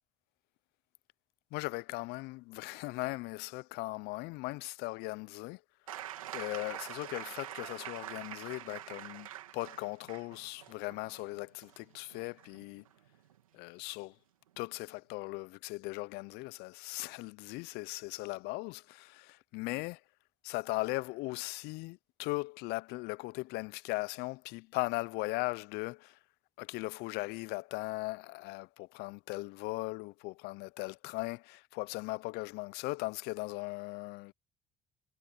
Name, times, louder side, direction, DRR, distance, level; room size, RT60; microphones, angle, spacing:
voice 1, 1.5-5.6 6.3-12.8 13.5-14.1 14.6-20.0 20.4-26.2 26.6-34.3, left 24 dB, 70° left, 0.7 m, -38 dB
sound 1, 5.9-13.4 14.6-14.7, right 12 dB, 90° right, 3.2 m, -45 dB
hypercardioid pair, 55°, 17 cm